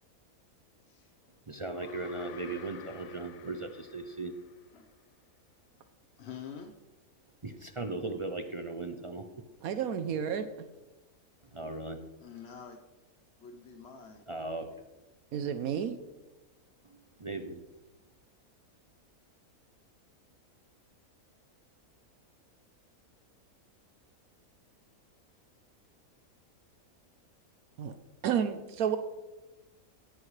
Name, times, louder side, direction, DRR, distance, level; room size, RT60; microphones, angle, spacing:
voice 1, 0.8-1.2 4.7-4.9 6.2-6.7 12.2-12.8 13.4-14.3, left 7 dB, 50° left, 4 dB, 1.0 m, -46 dB
voice 2, 1.5-4.4 7.4-9.5 11.5-12.1 14.3-14.7 16.9-17.6, right 2 dB, 40° right, 6 dB, 0.4 m, -38 dB
sound 1, 1.7-4.8, left 8 dB, 70° left, 1.1 m, -51 dB
voice 3, 9.6-10.5 15.3-16.0 27.8-27.9 28.2-29.0, right 8 dB, 75° right, 9 dB, 1.1 m, -31 dB
17.0 x 10.5 x 3.3 m, 1.1 s
omnidirectional pair, 1.5 m